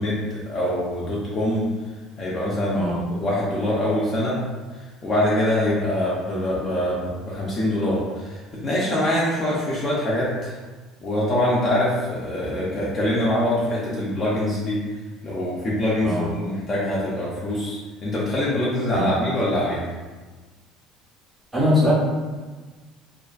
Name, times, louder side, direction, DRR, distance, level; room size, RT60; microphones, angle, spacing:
voice 1, 0.0-1.7 2.2-2.9 3.2-4.4 4.7-10.6 11.0-14.8 15.2-19.8, left 1 dB, 25° left, -7 dB, 0.4 m, -24 dB
voice 2, 2.7-3.0 16.0-16.3 18.9-19.1 21.5-21.9, left 1 dB, 5° right, -8 dB, 0.7 m, -21 dB
2.5 x 2.2 x 2.4 m, 1.3 s
cardioid pair, 165°, 0 cm